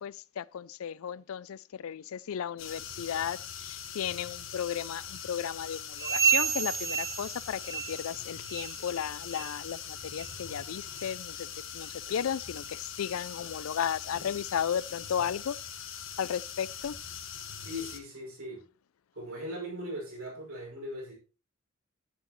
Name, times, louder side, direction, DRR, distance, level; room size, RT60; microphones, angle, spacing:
voice 1, 0.0-15.6 16.2-17.0, left 8 dB, 80° left, 0.4 m, -34 dB
sound 1, 2.6-18.0, left 8 dB, 65° left, 1.7 m, -42 dB
sound 2, 6.0-8.2 8.5-8.8 9.3-9.5 10.1-10.3 11.0-11.1 11.8-11.9, right 7 dB, 15° right, 0.4 m, -30 dB
voice 2, 17.5-18.6 19.1-21.1, equal, 90° right, 5.8 m, -39 dB
11.0 x 9.3 x 3.1 m
head